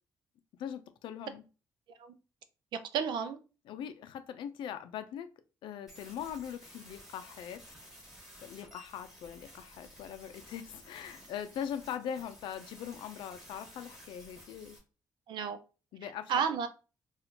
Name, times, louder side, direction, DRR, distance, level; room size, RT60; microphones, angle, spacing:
voice 1, 0.6-1.4 3.7-5.3 5.6-7.6 8.4-14.8 15.9-16.3, left 9 dB, 90° left, 0.5 m, -41 dB
voice 2, 2.7-3.4 15.3-15.6 16.0-16.7, right 7 dB, 70° right, 0.5 m, -32 dB
sound 1, 5.9-14.8, equal, 5° right, 1.3 m, -54 dB
4.2 x 2.4 x 2.8 m
cardioid pair, 180°, 8 cm